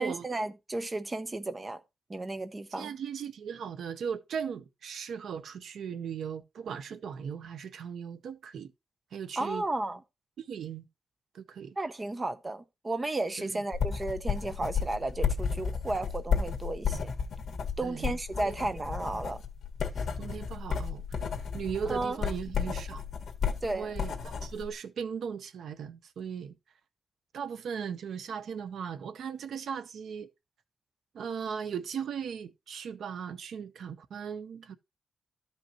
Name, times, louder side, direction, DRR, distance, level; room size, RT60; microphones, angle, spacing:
voice 1, 0.0-1.8 2.1-2.9 9.4-10.0 11.8-17.1 17.8-19.4 20.0-20.1 21.9-22.2 23.6-23.9, right 2 dB, 20° right, 0.7 m, -33 dB
voice 2, 2.8-8.7 9.1-9.6 10.4-10.9 11.3-11.8 13.4-13.6 17.8-18.6 20.2-23.0 23.7-26.5 27.3-30.3 31.1-34.7, right 7 dB, 70° right, 0.7 m, -38 dB
sound 1, 13.7-24.7, left 6 dB, 55° left, 1.7 m, -33 dB
13.5 x 5.3 x 2.9 m
wide cardioid pair, 170°, 0 cm